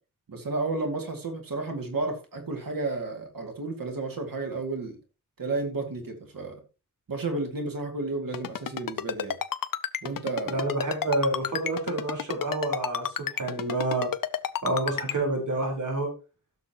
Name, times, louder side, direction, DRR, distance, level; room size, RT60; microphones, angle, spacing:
voice 1, 0.3-5.0 5.4-6.6 7.1-9.4 10.0-10.7, right 3 dB, 90° right, 4 dB, 2.3 m, -32 dB
Ringtone, 8.3-15.1, left 9 dB, 80° left, 0.7 m, -30 dB
voice 2, 10.5-14.1 14.6-16.1, right 2 dB, 65° right, 1 dB, 4.4 m, -28 dB
15.5 x 6.6 x 3.0 m, 0.32 s
wide cardioid pair, 85°, 33 cm